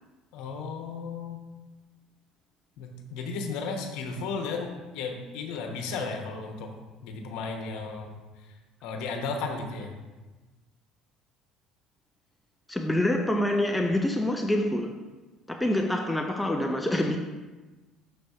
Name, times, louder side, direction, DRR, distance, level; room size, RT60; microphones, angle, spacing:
voice 1, 0.3-1.4 2.8-6.7 7.0-8.1 8.4-8.5 8.8-10.0, left 4 dB, 75° left, 1.0 m, -34 dB
voice 2, 12.7-14.9 15.5-17.2, left 1 dB, 10° left, 0.5 m, -26 dB
6.6 x 3.4 x 5.4 m
supercardioid pair, 80°, 0 cm